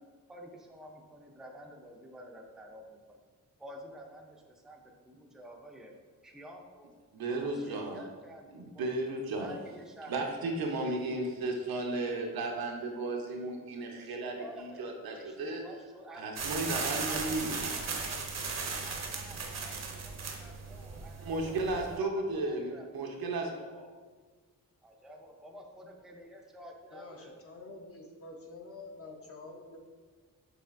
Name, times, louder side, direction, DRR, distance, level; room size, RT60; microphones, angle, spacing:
voice 1, 0.0-3.2 3.6-5.9 6.2-6.9 7.4-10.3 10.6-10.7 13.9-17.3 17.6-18.5 18.8-21.6 21.9-22.9 23.5-23.9 24.8-27.3, equal, ahead, 1 dB, 0.4 m, -51 dB
voice 2, 7.1-8.0 8.5-9.5 10.1-15.6 16.2-17.6 21.2-23.5, right 2 dB, 85° right, 1 dB, 0.7 m, -34 dB
sound 1, 16.4-22.0, right 4 dB, 50° right, 0.6 m, -37 dB
voice 3, 26.9-29.8, left 2 dB, 40° left, 1 dB, 0.6 m, -47 dB
6.6 x 3.2 x 2.5 m, 1.5 s
wide cardioid pair, 135°, 35 cm